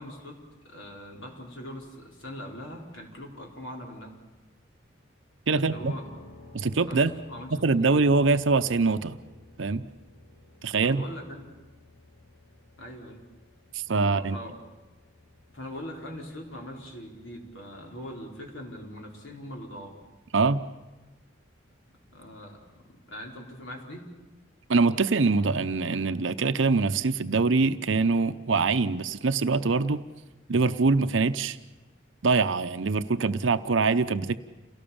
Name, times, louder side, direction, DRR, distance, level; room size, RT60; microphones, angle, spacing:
voice 1, 0.0-4.2 5.5-6.1 6.9-8.0 10.8-11.5 12.8-13.2 14.0-14.6 15.5-20.0 21.9-22.6 23.1-24.1, left 1 dB, 85° left, 0 dB, 4.5 m, -41 dB
voice 2, 5.5-5.9 6.5-7.1 7.5-9.2 9.6-9.8 10.6-11.0 13.7-14.4 20.3-20.6 24.7-30.0 30.5-31.6 32.2-34.4, right 4 dB, 80° right, 11 dB, 0.7 m, -24 dB
sound 1, 5.7-21.5, left 2 dB, 35° left, 3.4 m, -55 dB
28.5 x 18.0 x 7.2 m, 1.1 s
head